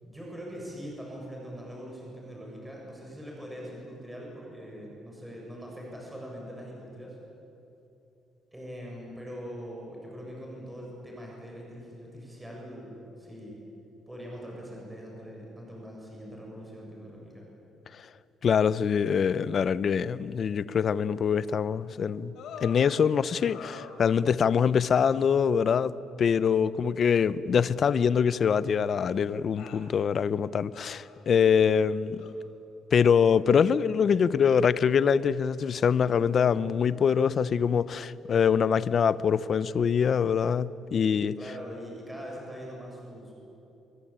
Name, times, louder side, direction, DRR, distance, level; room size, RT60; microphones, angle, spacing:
voice 1, 0.0-7.2 8.5-13.6 14.1-17.5 26.5-26.8 41.3-43.3, equal, 5° right, 7.6 m, -42 dB
voice 2, 18.4-22.3 22.6-32.2 32.9-41.3, left 7 dB, 45° left, 0.8 m, -24 dB
sound 1, 22.3-22.9 23.4-24.4 25.1-25.3 26.4-26.5 27.8-28.7 29.6-29.9 30.7-31.2 32.2-32.3, left 7 dB, 70° left, 3.7 m, -46 dB
28.5 x 23.5 x 8.9 m
cardioid pair, 130°, 0 cm